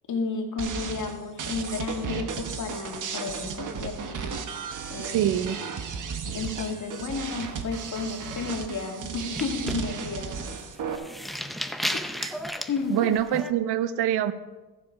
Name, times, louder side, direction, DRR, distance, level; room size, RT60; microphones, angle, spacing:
voice 1, 0.1-4.4 4.9-5.3 6.3-10.6 11.9-12.0 12.7-13.0, left 4 dB, 50° left, 1 dB, 2.2 m, -32 dB
sound 1, 0.6-11.0, right 6 dB, 50° right, 1.2 m, -35 dB
voice 2, 5.0-5.6 12.2-12.3 12.9-14.3, right 11 dB, 85° right, 13 dB, 0.7 m, -25 dB
sound 2, 6.4-7.2 7.6-7.9 8.2-8.6 9.2-13.5, equal, ahead, 0.5 m, -35 dB
15.0 x 7.4 x 4.9 m, 1.2 s
cardioid pair, 115°, 39 cm